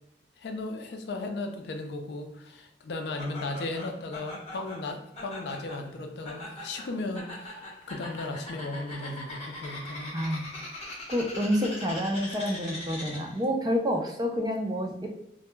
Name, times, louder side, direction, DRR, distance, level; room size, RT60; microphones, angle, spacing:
voice 1, 0.4-10.1, left 2 dB, 65° left, 5 dB, 0.4 m, -36 dB
Laughter, 3.2-13.4, left 1 dB, 35° left, 0.9 m, -41 dB
voice 2, 10.1-10.5 10.8-15.1, equal, 20° right, 2 dB, 0.3 m, -29 dB
2.1 x 2.1 x 3.0 m, 0.80 s
head